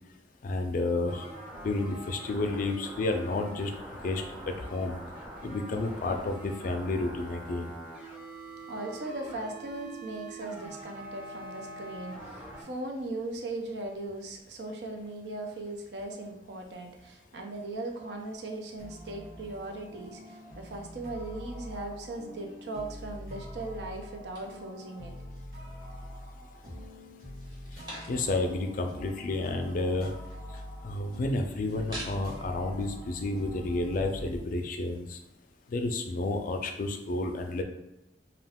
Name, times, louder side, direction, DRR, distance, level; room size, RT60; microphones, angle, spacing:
voice 1, 0.4-1.3 1.6-3.7 4.0-5.0 5.4-7.7 28.1-30.1 30.8-35.2 35.7-37.6, left 2 dB, 50° left, 4 dB, 0.3 m, -31 dB
sound 1, 1.1-12.6, right 1 dB, 5° right, 0.6 m, -44 dB
voice 2, 8.7-25.1, right 2 dB, 75° right, 2 dB, 0.5 m, -38 dB
sound 2, 18.8-34.4, equal, 60° right, 1.2 m, -44 dB
sound 3, 24.3-25.6 26.0-26.7 27.2-28.5 28.9-29.0 29.1-32.4, right 1 dB, 25° right, 1.0 m, -47 dB
2.4 x 2.2 x 3.4 m, 0.97 s
head